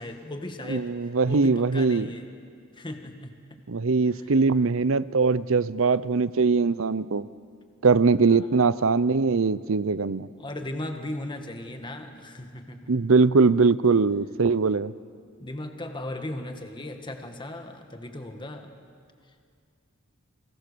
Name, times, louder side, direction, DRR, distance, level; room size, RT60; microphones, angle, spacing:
voice 1, 0.0-0.9 1.3-2.2 2.7-3.3 8.3-8.5 10.4-12.9 15.4-18.7, left 1 dB, 20° left, 5 dB, 1.8 m, -37 dB
voice 2, 0.7-2.1 3.7-7.3 7.8-10.3 12.9-14.9, right 4 dB, 70° right, 17 dB, 0.7 m, -21 dB
29.5 x 23.5 x 6.9 m, 2.2 s
head